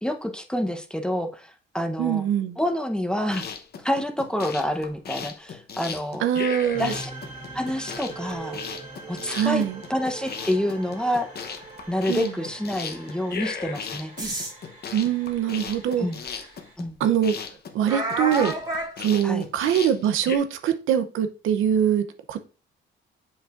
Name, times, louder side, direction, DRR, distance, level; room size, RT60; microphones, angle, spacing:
voice 1, 0.0-2.2 2.6-3.4 3.8-6.2 6.8-7.1 7.5-8.6 9.1-9.6 9.9-11.3 11.9-14.1 16.0-16.2 16.8-17.0 19.2-19.5, left 1 dB, 5° left, 5 dB, 0.8 m, -27 dB
voice 2, 2.0-2.6 6.2-6.9 9.3-9.8 12.1-12.3 14.9-16.1 17.0-17.3 17.7-18.5 19.0-22.4, right 9 dB, 85° right, 8 dB, 0.7 m, -23 dB
sound 1, 3.2-20.4, left 6 dB, 55° left, 0.9 m, -36 dB
sound 2, 6.7-16.8, right 3 dB, 40° right, 2.7 m, -43 dB
sound 3, 14.2-14.5 15.7-15.8 16.3-16.4 17.8-18.9, right 2 dB, 20° right, 1.9 m, -28 dB
7.2 x 5.5 x 2.5 m, 0.36 s
cardioid pair, 90°, 20 cm